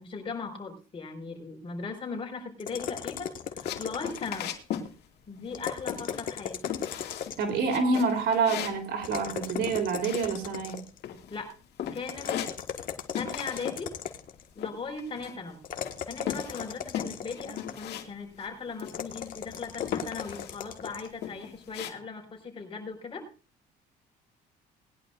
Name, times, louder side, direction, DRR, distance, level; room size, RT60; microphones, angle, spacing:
voice 1, 0.0-4.5 5.3-6.6 11.3-11.5 11.9-12.3 13.1-14.0 14.5-15.6 16.1-23.2, left 4 dB, 30° left, 2 dB, 5.1 m, -38 dB
sound 1, 2.6-4.5 5.5-7.6 9.0-11.0 12.1-14.4 15.6-17.9 18.9-21.1, left 8 dB, 55° left, 1.7 m, -37 dB
sound 2, 3.6-4.9 5.2-5.6 5.9-6.4 6.6-7.4 7.7-10.7 11.0-11.5 11.8-12.9 13.2-13.8 14.1-15.5 15.8-18.1 18.4-18.5 18.8-19.4 19.8-20.5 21.0-21.9, left 10 dB, 75° left, 2.2 m, -37 dB
voice 2, 7.4-10.8, right 4 dB, 75° right, 5 dB, 3.5 m, -27 dB
20.5 x 11.0 x 2.6 m, 0.34 s
cardioid pair, 110°, 17 cm